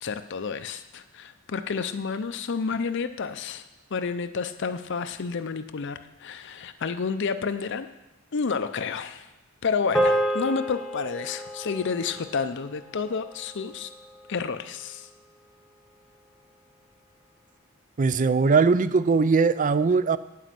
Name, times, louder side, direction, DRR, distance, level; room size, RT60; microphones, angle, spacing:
voice 1, 0.0-3.6 3.9-7.9 8.3-9.3 9.6-13.9 14.3-15.1, left 5 dB, 55° left, 10 dB, 0.5 m, -30 dB
sound 1, 9.9-14.5, right 1 dB, ahead, 1.2 m, -30 dB
voice 2, 18.0-20.2, right 4 dB, 35° right, 16 dB, 0.4 m, -20 dB
9.3 x 9.2 x 7.5 m, 0.99 s
head